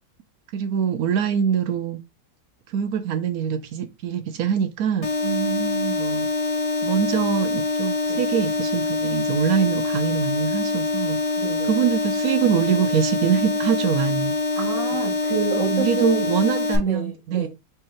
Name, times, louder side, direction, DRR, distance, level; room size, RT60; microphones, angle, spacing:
voice 1, 0.5-2.0 2.7-5.1 6.0-6.3 6.8-11.2 11.6-14.3 15.6-17.5, right 8 dB, 70° right, 0.9 m, -24 dB
sound 1, 5.0-16.8, left 3 dB, 40° left, 0.5 m, -25 dB
voice 2, 5.2-6.0 8.1-8.2 11.4-11.8 14.5-16.3 16.8-17.5, right 5 dB, 50° right, 1.3 m, -28 dB
4.2 x 3.2 x 3.7 m
omnidirectional pair, 2.0 m